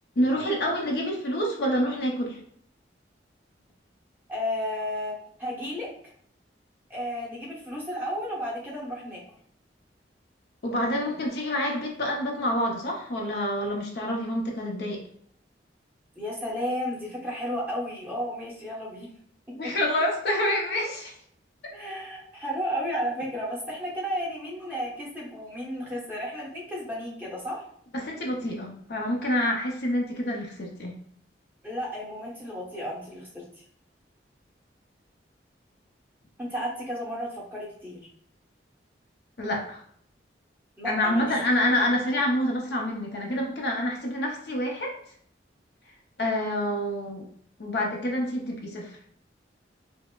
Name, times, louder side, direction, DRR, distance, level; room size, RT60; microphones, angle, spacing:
voice 1, 0.2-2.4 10.6-15.0 19.5-21.1 27.9-30.9 39.4-39.8 40.8-45.0 46.2-47.3 47.6-49.0, left 1 dB, 60° left, 0 dB, 0.6 m, -27 dB
voice 2, 4.3-5.9 6.9-9.2 16.2-19.1 21.7-27.6 31.6-33.6 36.4-38.0 40.8-41.4, equal, 10° right, -6 dB, 1.1 m, -33 dB
5.2 x 2.0 x 2.3 m, 0.62 s
head